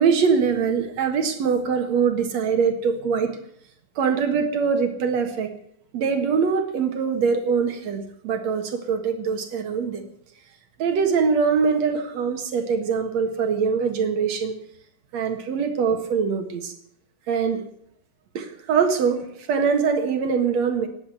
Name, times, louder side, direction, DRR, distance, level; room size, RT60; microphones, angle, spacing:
voice 1, 0.0-3.4 4.0-5.5 5.9-10.0 10.8-14.5 15.1-16.7 17.3-17.6 18.3-20.9, right 6 dB, 65° right, 6 dB, 2.8 m, -23 dB
17.5 x 9.8 x 7.8 m, 0.71 s
omnidirectional pair, 3.4 m